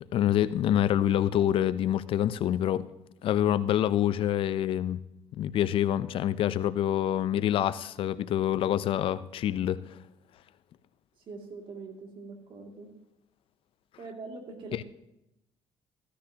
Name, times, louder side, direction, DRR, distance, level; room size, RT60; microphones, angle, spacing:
voice 1, 0.1-2.9 3.2-5.0 5.4-10.0 14.7-14.8, left 11 dB, 60° left, 0.5 m, -26 dB
voice 2, 11.2-12.9 14.0-14.8, right 3 dB, 55° right, 2.5 m, -43 dB
15.0 x 13.5 x 2.9 m
cardioid pair, 90°, 10 cm